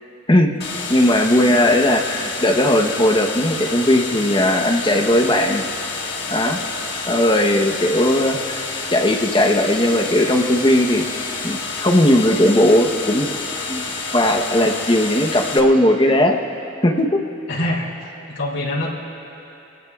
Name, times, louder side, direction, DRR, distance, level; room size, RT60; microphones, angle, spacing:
sound 1, 0.6-15.6, left 4 dB, 60° left, 1.6 m, -29 dB
voice 1, 0.9-5.6 6.3-6.6 7.1-11.0 11.4-13.3 13.7-13.9 14.1-16.4 16.8-17.1 17.6-17.8, left 1 dB, 25° left, 2 dB, 1.0 m, -17 dB
voice 2, 17.5-17.9 18.3-18.9, left 1 dB, 90° left, -4 dB, 3.3 m, -24 dB
25.5 x 18.5 x 2.4 m, 2.9 s
head